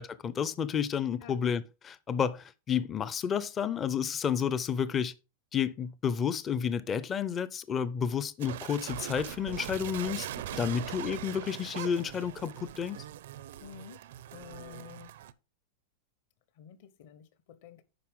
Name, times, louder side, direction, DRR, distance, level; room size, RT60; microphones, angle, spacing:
voice 1, 0.0-5.1 5.5-10.3 10.5-13.0, left 7 dB, 20° left, 0.4 m, -31 dB
sound 1, 8.4-15.3, right 12 dB, 65° right, 0.5 m, -41 dB
voice 2, 13.6-14.0 14.3-15.1 16.6-17.8, left 9 dB, 50° left, 1.0 m, -50 dB
9.5 x 5.5 x 3.6 m
supercardioid pair, 165°, 0 cm